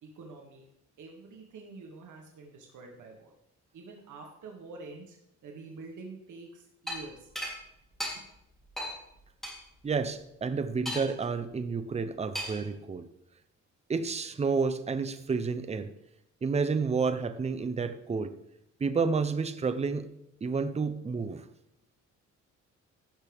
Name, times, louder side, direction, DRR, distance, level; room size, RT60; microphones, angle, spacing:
voice 1, 0.0-0.6 1.0-3.3 3.7-5.2 5.4-7.3 8.1-8.2, right 3 dB, 75° right, 0 dB, 1.8 m, -47 dB
sound 1, 6.9-7.0 7.4-7.5 8.0-8.1 8.8-8.9 9.4-9.5 10.9-11.2 12.3-12.7, equal, ahead, 3.2 m, -35 dB
voice 2, 9.8-13.1 13.9-15.9 16.4-18.3 18.8-20.1 20.4-21.4, right 5 dB, 20° right, 10 dB, 0.6 m, -30 dB
16.0 x 6.3 x 3.5 m, 0.79 s
cardioid pair, 135°, 30 cm